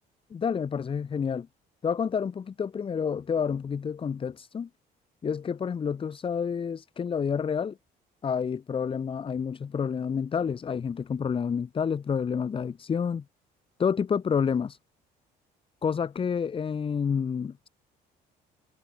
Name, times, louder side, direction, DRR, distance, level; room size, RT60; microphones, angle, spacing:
voice 1, 0.3-1.5 1.8-4.7 5.2-7.8 8.2-13.2 13.8-14.8 15.8-17.7, left 6 dB, 30° left, 1.1 m, -29 dB
cardioid pair, 110°, 17 cm